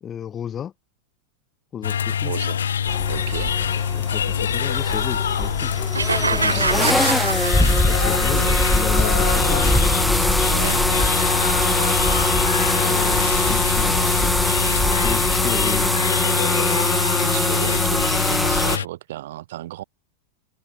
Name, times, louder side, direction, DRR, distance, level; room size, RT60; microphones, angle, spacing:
voice 1, 0.0-0.7 1.7-2.3 3.9-5.7 6.2-7.0 7.8-9.7 12.8-14.3 15.0-16.0, left 9 dB, 25° left, 1.6 m, -33 dB
sound 1, 1.8-18.9, left 8 dB, 65° left, 0.3 m, -24 dB
voice 2, 2.2-2.6 3.0-3.6 6.5-7.1 8.1-8.7 10.4-10.8 17.1-19.8, right 14 dB, 55° right, 5.1 m, -33 dB
sound 2, 2.9-18.8, left 1 dB, 5° left, 0.5 m, -22 dB
sound 3, 5.9-8.3, right 4 dB, 75° right, 0.6 m, -25 dB
open air
figure-of-eight pair, 90°, 0 cm